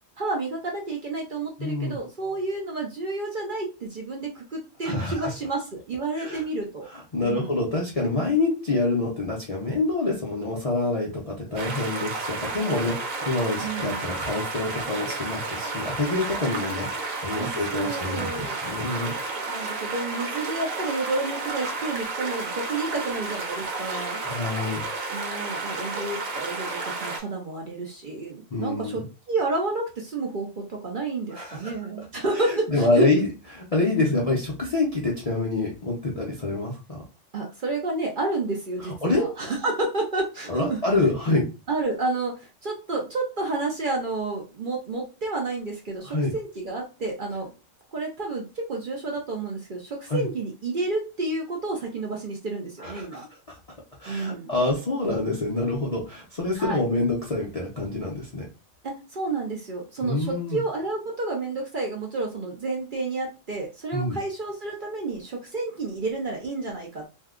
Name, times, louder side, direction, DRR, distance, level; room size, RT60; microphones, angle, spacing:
voice 1, 0.2-6.9 7.2-7.6 13.6-14.0 17.4-18.6 19.3-24.2 25.1-33.1 37.3-40.8 41.7-47.5 47.9-53.2 54.1-54.5 56.5-56.8 58.8-67.0, right 3 dB, 50° right, 0 dB, 0.7 m, -30 dB
voice 2, 1.6-2.0 4.8-5.3 6.2-6.4 6.9-19.1 24.2-24.8 28.5-29.0 31.3-31.7 32.3-33.3 33.5-37.0 38.8-39.3 40.5-41.5 46.0-46.3 50.1-50.2 52.8-53.3 54.0-58.5 60.0-60.6 63.9-64.2, left 2 dB, 45° left, -3 dB, 0.5 m, -26 dB
sound 1, 11.6-27.2, right 3 dB, 85° right, 1.1 m, -32 dB
2.7 x 2.2 x 3.6 m, 0.31 s
omnidirectional pair, 1.4 m